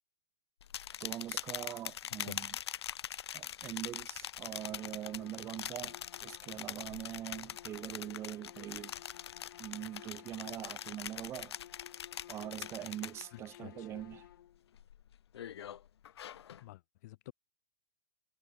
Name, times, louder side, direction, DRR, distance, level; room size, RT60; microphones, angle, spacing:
sound 1, 0.6-13.6 13.9-14.3 14.8-16.6, left 10 dB, 75° left, 1.0 m, -43 dB
voice 1, 1.0-2.6 3.3-8.9 9.6-11.6 12.3-14.3, right 12 dB, 20° right, 3.0 m, -43 dB
sound 2, 4.5-14.7, left 12 dB, 55° left, 3.7 m, -56 dB
voice 2, 16.6-17.3, left 18 dB, 40° left, 1.5 m, -49 dB
hypercardioid pair, 165°, 14 cm